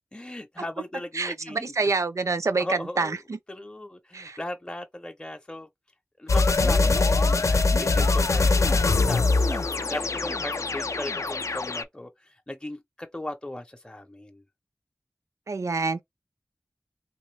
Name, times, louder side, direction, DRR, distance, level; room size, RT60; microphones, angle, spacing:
voice 1, 0.1-1.7 2.6-3.2 3.5-5.7 6.2-9.2 9.5-14.4, left 1 dB, 15° left, 0.5 m, -37 dB
voice 2, 1.2-2.6 3.0-3.4 4.1-4.4 15.5-16.0, right 4 dB, 90° right, 0.4 m, -27 dB
sound 1, 6.3-11.8, left 3 dB, 80° left, 0.3 m, -23 dB
3.0 x 3.0 x 3.2 m
wide cardioid pair, 60°, 5 cm